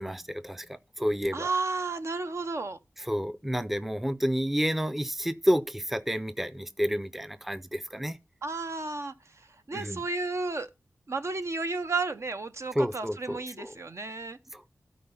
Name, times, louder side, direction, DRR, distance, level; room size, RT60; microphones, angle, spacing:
voice 1, 0.0-1.5 3.1-8.2 9.7-10.0 12.7-13.7 14.5-14.6, equal, 5° right, 0.6 m, -30 dB
voice 2, 1.3-2.8 8.4-10.7 11.1-14.4, right 3 dB, 55° right, 0.8 m, -32 dB
12.5 x 4.3 x 5.5 m
wide cardioid pair, 75°, 6 cm